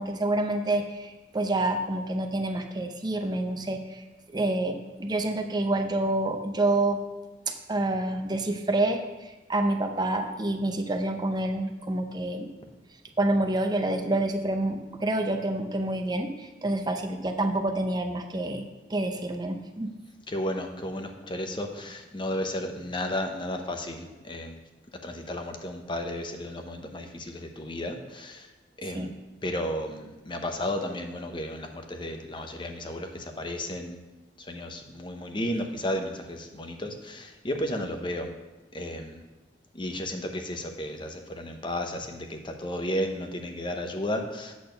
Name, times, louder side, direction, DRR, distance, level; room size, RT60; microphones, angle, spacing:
voice 1, 0.0-7.0 7.7-12.5 13.2-19.9 28.9-29.1, right 2 dB, 25° right, 6 dB, 0.6 m, -28 dB
voice 2, 20.3-24.5 25.0-28.5 28.8-29.1 29.4-34.0 34.4-38.3 38.7-39.2 39.7-44.5, left 1 dB, 30° left, 5 dB, 0.8 m, -33 dB
8.5 x 4.1 x 6.7 m, 1.1 s
head